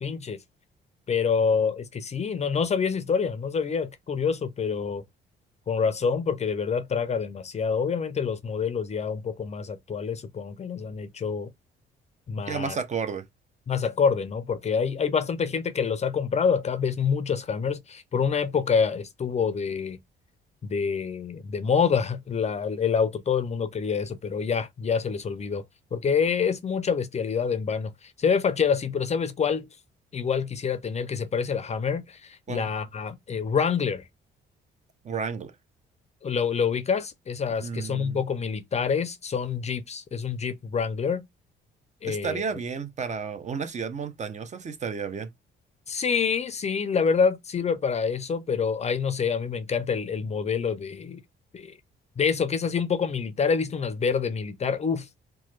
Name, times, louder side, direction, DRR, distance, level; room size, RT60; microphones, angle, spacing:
voice 1, 0.0-0.4 1.1-5.0 5.7-11.5 12.3-12.8 13.7-20.0 20.6-25.6 25.9-29.7 30.1-34.0 36.2-41.3 42.0-42.4 45.9-51.2 51.5-51.8 52.2-55.2, left 6 dB, 35° left, 0.4 m, -27 dB
voice 2, 12.5-13.3 32.5-32.7 35.0-35.5 37.6-38.2 42.0-45.3, right 6 dB, 35° right, 0.5 m, -32 dB
2.9 x 2.1 x 3.1 m
cardioid pair, 90°, 20 cm